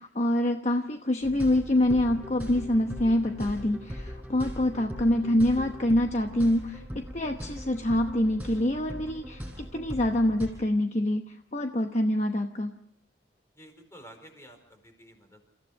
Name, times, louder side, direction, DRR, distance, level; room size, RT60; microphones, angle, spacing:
voice 1, 0.0-12.7, left 1 dB, 40° left, 5 dB, 1.0 m, -26 dB
sound 1, 1.2-10.5, equal, 10° right, 6.8 m, -40 dB
voice 2, 13.6-15.5, right 1 dB, 15° left, 4 dB, 4.5 m, -51 dB
29.0 x 15.5 x 6.4 m, 0.78 s
head